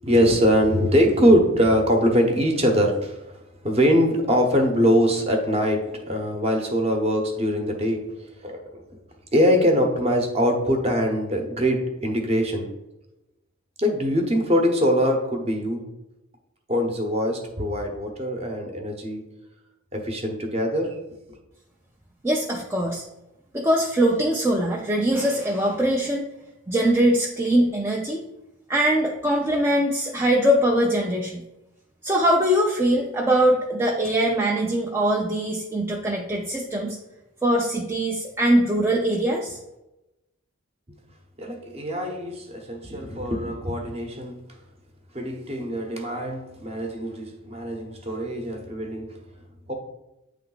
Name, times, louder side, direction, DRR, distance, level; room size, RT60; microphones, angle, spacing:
voice 1, 0.0-3.4 3.6-8.8 9.3-12.7 13.8-15.8 16.7-19.2 19.9-21.0 41.4-44.4 45.1-49.2 49.7-49.8, equal, 30° right, 0.9 m, -23 dB
voice 2, 22.2-23.0 23.5-26.2 26.7-28.2 28.7-31.4 32.0-37.0 37.4-39.6, right 1 dB, 10° right, 0.4 m, -22 dB
8.5 x 3.4 x 3.9 m
head